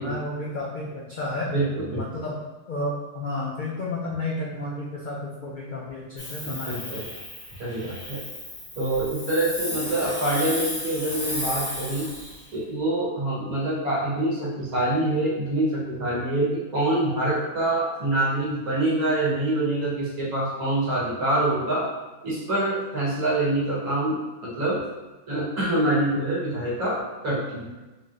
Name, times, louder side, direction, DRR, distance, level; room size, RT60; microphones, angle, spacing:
voice 1, 0.0-1.5 1.9-2.4 2.7-7.0, left 2 dB, 85° left, -3 dB, 0.4 m, -32 dB
voice 2, 1.5-2.2 6.4-7.0 7.6-8.2 8.8-12.1 12.5-21.9 22.2-24.8 25.3-27.7, right 1 dB, 85° right, -7 dB, 1.7 m, -25 dB
Hiss, 6.2-12.5, left 1 dB, 40° left, 1.0 m, -34 dB
4.1 x 3.0 x 2.5 m, 1.1 s
omnidirectional pair, 1.5 m